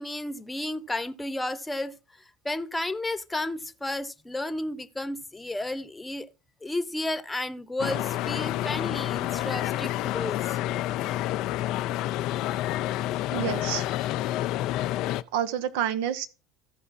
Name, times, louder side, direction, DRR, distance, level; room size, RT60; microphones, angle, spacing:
voice 1, 0.0-1.9 2.4-6.3 6.6-10.4, left 1 dB, 10° left, 1.0 m, -32 dB
sound 1, 7.8-15.2, left 14 dB, 55° left, 0.5 m, -29 dB
voice 2, 13.3-13.8 15.3-16.3, right 10 dB, 65° right, 1.0 m, -28 dB
14.5 x 4.9 x 4.3 m
hypercardioid pair, 75°, 0 cm